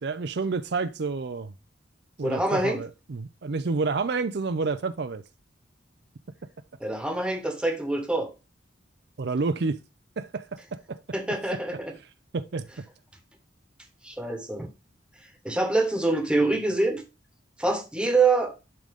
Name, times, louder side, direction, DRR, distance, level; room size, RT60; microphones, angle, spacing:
voice 1, 0.0-1.5 2.2-5.2 9.2-9.8 10.2-11.0 12.3-12.8, right 4 dB, 60° right, 0.5 m, -29 dB
voice 2, 2.2-2.8 6.8-8.3 11.1-12.0 14.0-14.7 15.4-17.0 17.6-18.5, right 2 dB, 5° right, 1.2 m, -25 dB
10.5 x 3.9 x 3.5 m
head